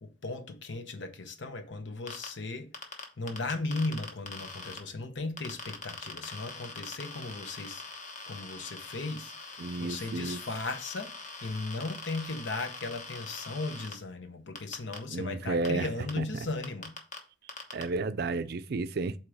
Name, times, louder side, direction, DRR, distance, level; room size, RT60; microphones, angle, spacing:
voice 1, 0.0-2.7 3.2-7.8 8.3-16.9, left 3 dB, 75° left, 0.8 m, -36 dB
sound 1, 2.1-2.3 2.7-4.8 5.4-13.9 14.6-15.0 15.7-15.8 16.1-16.2 16.6-17.2 17.5-17.8, left 4 dB, 40° left, 1.1 m, -43 dB
voice 2, 9.6-10.4 15.1-15.9 16.2-16.3 17.7-19.2, right 3 dB, 60° right, 0.5 m, -32 dB
8.1 x 3.0 x 4.9 m
head